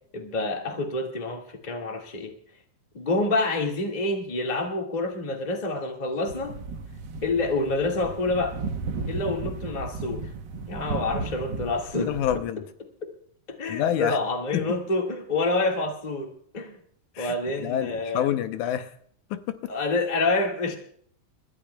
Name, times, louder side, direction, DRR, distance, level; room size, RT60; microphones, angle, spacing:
voice 1, 0.1-2.3 2.9-6.5 7.2-8.6 9.1-10.3 10.7-12.4 13.5-16.8 17.2-18.2 19.7-20.8, left 2 dB, 20° left, 1 dB, 1.2 m, -27 dB
sound 1, 6.3-12.4, right 4 dB, 80° right, 1.0 m, -34 dB
voice 2, 12.1-12.6 13.7-14.2 14.5-14.7 17.2-18.9 19.3-19.7, left 10 dB, 80° left, 9 dB, 2.2 m, -28 dB
30.0 x 13.5 x 2.2 m, 0.62 s
omnidirectional pair, 3.5 m